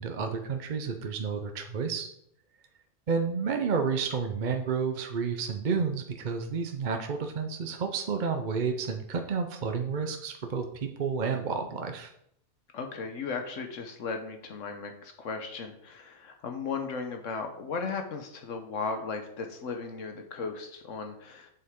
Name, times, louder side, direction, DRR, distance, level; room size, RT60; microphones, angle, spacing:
voice 1, 0.0-2.1 3.1-12.1, right 5 dB, 45° right, 5 dB, 0.7 m, -30 dB
voice 2, 12.7-21.5, left 4 dB, 75° left, 5 dB, 1.2 m, -36 dB
7.9 x 7.5 x 3.7 m, 0.73 s
omnidirectional pair, 1.3 m